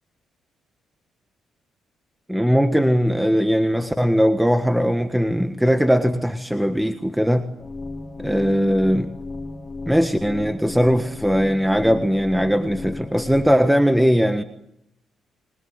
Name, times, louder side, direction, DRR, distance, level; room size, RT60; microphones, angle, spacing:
voice 1, 2.3-7.5 8.2-9.1 9.9-14.4, equal, 5° right, 8 dB, 1.5 m, -19 dB
sound 1, 7.6-13.6, left 3 dB, 20° left, 3.1 m, -34 dB
28.0 x 21.5 x 7.9 m, 0.79 s
cardioid pair, 90°, 0 cm